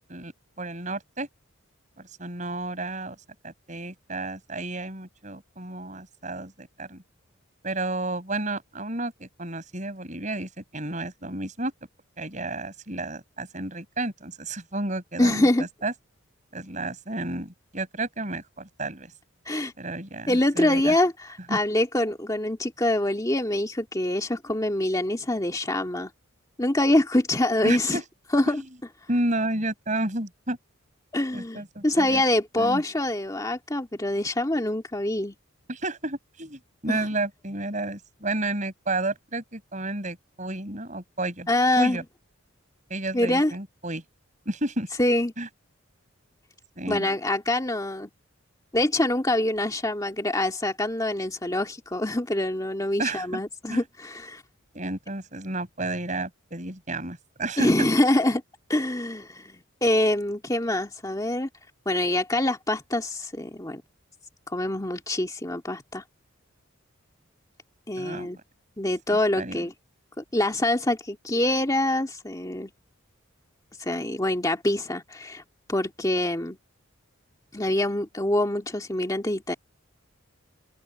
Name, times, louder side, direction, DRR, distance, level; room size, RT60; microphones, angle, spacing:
voice 1, 0.6-1.3 2.0-3.2 3.4-7.0 7.6-11.7 12.2-15.9 16.5-19.1 19.8-21.0 21.5-21.6 27.6-28.0 28.5-28.6 29.1-30.6 31.3-32.2 32.6-32.8 35.7-41.5 41.8-42.0 42.9-44.0 44.5-44.9 45.4-45.5 46.8-47.1 53.0-53.4 53.7-53.8 54.7-57.9 68.0-68.3 69.1-69.6, right 2 dB, 35° right, 6.0 m, -31 dB
voice 2, 15.2-15.7 19.5-19.7 20.3-26.1 26.6-28.0 28.3-28.6 31.1-35.3 36.9-37.1 41.5-42.0 43.1-43.5 45.0-45.3 46.9-48.1 48.7-54.4 57.6-58.4 58.7-61.5 61.9-63.8 64.5-66.0 67.9-68.4 68.8-69.7 70.2-72.7 73.8-75.4 75.7-76.6 77.5-79.5, left 1 dB, 15° left, 2.0 m, -25 dB
open air
head